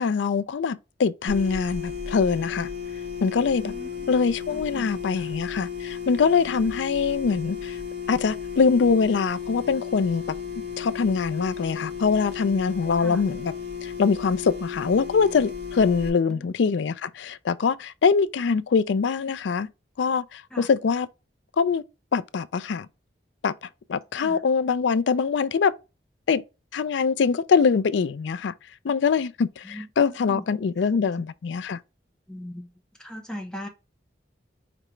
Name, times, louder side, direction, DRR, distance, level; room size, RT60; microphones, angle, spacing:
voice 1, 0.0-2.7 3.2-3.7 4.1-7.8 8.1-10.2 10.8-13.5 13.8-19.7 20.0-21.1 21.6-21.8 22.1-22.9 23.4-25.7 26.3-26.4 26.7-28.5 28.8-31.8, left 5 dB, 85° left, 0.4 m, -23 dB
sound 1, 1.3-16.1, left 7 dB, 60° right, 2.1 m, -34 dB
voice 2, 3.6-4.1 4.5-5.3 13.0-13.2 16.3-16.5 20.5-20.7 24.1-24.4 29.6-30.4 30.8-31.2 32.3-32.7 33.0-33.7, equal, 5° left, 0.8 m, -39 dB
5.0 x 3.3 x 3.1 m
head